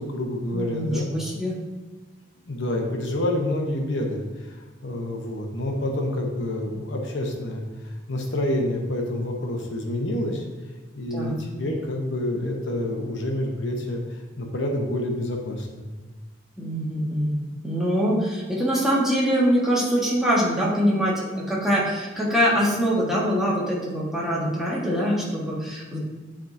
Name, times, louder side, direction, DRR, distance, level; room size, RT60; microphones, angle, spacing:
voice 1, 0.0-1.1 2.5-4.6 4.8-10.4 10.9-15.9, left 1 dB, 80° left, 1 dB, 0.9 m, -28 dB
voice 2, 0.5-1.6 11.1-11.4 16.6-26.0, equal, 5° right, -6 dB, 1.4 m, -24 dB
10.0 x 3.6 x 2.7 m, 1.2 s
head